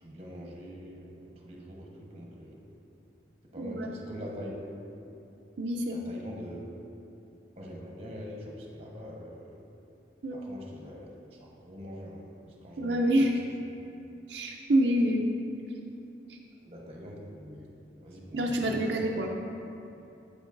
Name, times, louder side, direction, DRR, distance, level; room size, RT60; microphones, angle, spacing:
voice 1, 0.0-2.6 3.5-4.5 5.9-6.7 7.6-9.6 10.3-11.1 11.4-12.3 12.6-13.3 16.6-17.7 18.0-19.2, equal, 35° right, -2 dB, 1.1 m, -44 dB
voice 2, 5.6-6.0 10.2-10.4 12.8-13.3 14.3-15.3 16.3-16.4 18.3-19.3, right 1 dB, 80° right, 0 dB, 0.5 m, -27 dB
8.8 x 8.4 x 2.6 m, 2.8 s
head